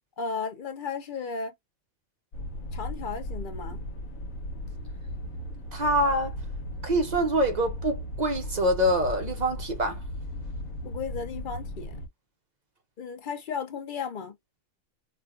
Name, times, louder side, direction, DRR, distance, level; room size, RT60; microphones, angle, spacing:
voice 1, 0.2-1.5 2.7-3.8 10.8-12.0 13.0-14.4, left 5 dB, 55° left, 0.6 m, -34 dB
sound 1, 2.3-12.1, left 1 dB, 90° left, 1.2 m, -37 dB
voice 2, 5.7-6.3 6.8-10.0, right 1 dB, 50° right, 0.5 m, -25 dB
4.3 x 2.2 x 2.4 m
omnidirectional pair, 1.4 m